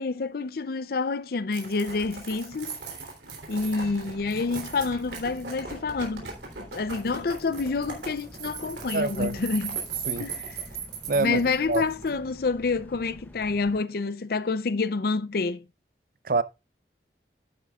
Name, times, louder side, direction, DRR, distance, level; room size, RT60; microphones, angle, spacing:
voice 1, 0.0-2.8 3.5-6.3 6.6-9.8 10.2-10.4 11.2-15.6, left 4 dB, 55° left, 0.5 m, -28 dB
sound 1, 1.5-12.1, right 6 dB, 75° right, 3.3 m, -38 dB
sound 2, 3.6-13.8, equal, 10° left, 0.8 m, -48 dB
voice 2, 8.9-9.4 10.1-10.3 11.1-11.4 11.7-11.8 16.2-16.4, right 3 dB, 50° right, 0.6 m, -25 dB
11.0 x 9.4 x 2.4 m
head